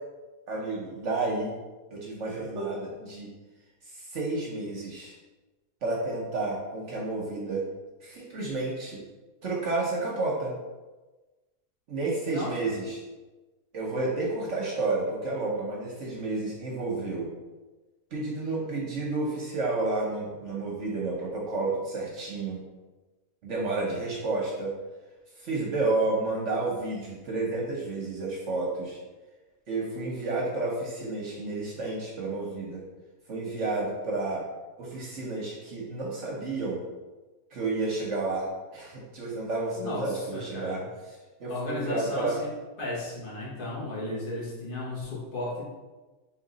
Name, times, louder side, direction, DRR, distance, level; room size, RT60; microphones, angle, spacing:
voice 1, 0.5-1.5 1.9-3.3 3.9-5.2 5.8-7.6 8.0-9.0 9.4-10.5 11.9-13.0 13.7-17.3 18.1-22.6 23.4-24.8 25.4-29.0 29.7-32.8 33.3-34.4 34.8-36.8 37.5-40.8 41.4-42.4, right 3 dB, 55° right, -3 dB, 0.9 m, -31 dB
voice 2, 12.3-12.8 39.7-40.8 41.5-42.5 42.8-45.7, left 2 dB, 40° left, -5 dB, 1.1 m, -34 dB
3.7 x 3.0 x 3.9 m, 1.2 s
omnidirectional pair, 1.7 m